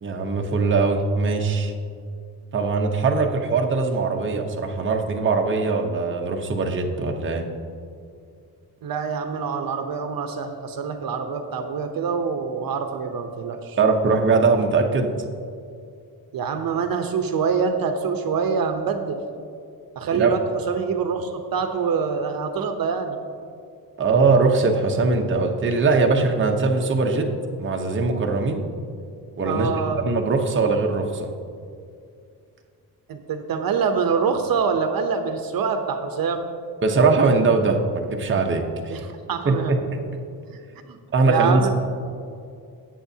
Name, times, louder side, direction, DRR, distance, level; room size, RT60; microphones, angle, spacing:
voice 1, 0.0-1.7 2.5-7.5 13.8-15.1 20.1-20.3 24.0-27.3 27.6-28.6 29.4-29.7 30.0-31.3 36.8-39.0 39.4-39.9 41.1-41.7, right 4 dB, 30° right, 2 dB, 0.8 m, -21 dB
voice 2, 8.8-13.8 16.3-19.2 20.0-20.4 20.7-23.2 29.4-30.0 33.1-36.5 38.9-39.8 40.5-40.6 40.9-41.0 41.3-41.7, right 5 dB, 65° right, 6 dB, 0.8 m, -25 dB
17.5 x 8.1 x 2.8 m, 2.4 s
wide cardioid pair, 145°, 38 cm